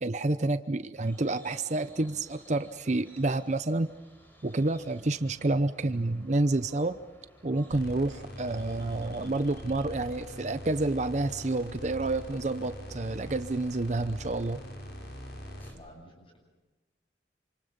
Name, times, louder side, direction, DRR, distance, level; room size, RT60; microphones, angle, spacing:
voice 1, 0.0-3.9 4.4-7.0 7.4-14.6, right 2 dB, 40° right, 11 dB, 0.7 m, -29 dB
sound 1, 0.9-15.8, equal, 10° left, 4.3 m, -58 dB
sound 2, 7.7-15.7, equal, 75° left, 5.6 m, -43 dB
voice 2, 15.7-16.4, equal, 30° left, 1 dB, 7.8 m, -52 dB
28.0 x 26.5 x 5.3 m, 1.2 s
head